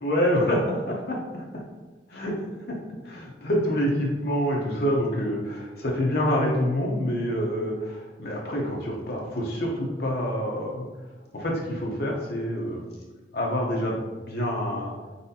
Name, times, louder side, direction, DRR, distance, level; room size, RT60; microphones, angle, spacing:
voice 1, 0.0-1.6 2.1-2.8 3.0-10.9 11.3-12.8 13.3-14.0 14.3-14.9, equal, 60° left, -2 dB, 0.7 m, -27 dB
4.2 x 4.0 x 2.7 m, 1.2 s
head